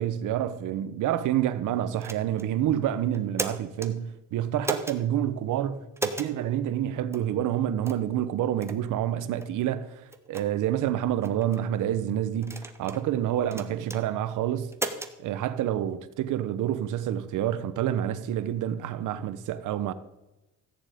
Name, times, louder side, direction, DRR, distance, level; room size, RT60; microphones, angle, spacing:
voice 1, 0.0-9.9 10.3-14.7 15.2-19.9, right 11 dB, 85° right, 0.9 m, -28 dB
sound 1, 2.0-2.5 3.1-3.9 4.6-5.0 6.0-6.3 7.1-7.3 7.8-8.1 8.6-8.8 9.4-9.5 10.1-10.4 11.2-11.6 12.4-13.0 13.5-14.0 14.7-15.1, right 2 dB, 10° right, 1.2 m, -34 dB
14.5 x 9.2 x 5.0 m
cardioid pair, 90°, 30 cm